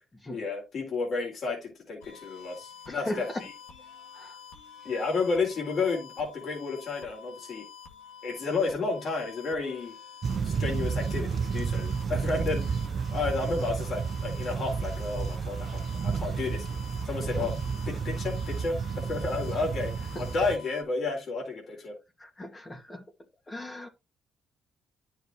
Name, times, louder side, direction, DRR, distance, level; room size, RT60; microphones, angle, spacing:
voice 1, 0.3-3.5 4.8-7.6 8.2-9.9 10.4-12.8 13.1-16.7 17.0-17.5 17.9-22.0, left 3 dB, 60° left, 3.9 m, -31 dB
sound 1, 2.0-20.8, left 7 dB, 85° left, 2.0 m, -48 dB
voice 2, 2.9-3.4 4.1-4.4 17.4-17.5 20.1-20.2 22.2-23.0 23.5-23.9, left 1 dB, 25° left, 2.0 m, -37 dB
sound 2, 10.2-20.6, right 6 dB, 50° right, 0.6 m, -31 dB
10.5 x 6.5 x 2.9 m
supercardioid pair, 65°, 0 cm